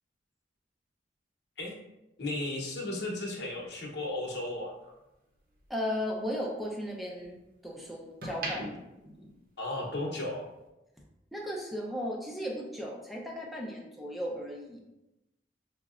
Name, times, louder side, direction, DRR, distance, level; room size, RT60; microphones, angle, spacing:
voice 1, 2.2-4.9 9.6-10.5, left 1 dB, 70° left, -2 dB, 0.8 m, -35 dB
sound 1, 3.4-5.7 6.1-7.5 8.0-10.1 10.4-10.7, right 2 dB, 55° right, 0.7 m, -42 dB
voice 2, 5.7-7.4 7.6-8.7 11.3-14.8, equal, ahead, -2 dB, 0.5 m, -35 dB
5.8 x 2.1 x 2.4 m, 0.95 s
head